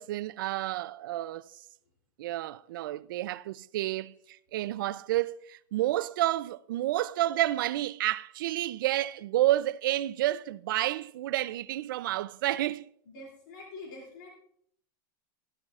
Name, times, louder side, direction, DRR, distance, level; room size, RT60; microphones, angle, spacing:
voice 1, 0.0-1.5 2.2-12.8, right 15 dB, 85° right, 0.4 m, -30 dB
voice 2, 13.1-14.3, left 2 dB, 65° left, 2.9 m, -45 dB
13.5 x 13.0 x 2.4 m
supercardioid pair, 165°, 11 cm